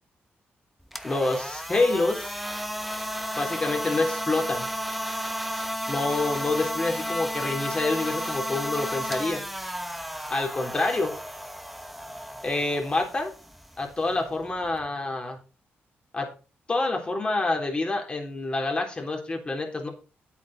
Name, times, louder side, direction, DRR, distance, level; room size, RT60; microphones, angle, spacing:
sound 1, 0.8-14.9, equal, ahead, 1.0 m, -33 dB
voice 1, 1.0-2.4 3.4-4.7 5.9-9.4 10.3-11.2 12.4-13.3 13.8-15.4 16.1-16.3 16.7-19.9, left 2 dB, 25° left, 2 dB, 3.6 m, -27 dB
9.8 x 8.4 x 4.3 m, 0.32 s
cardioid pair, 110°, 4 cm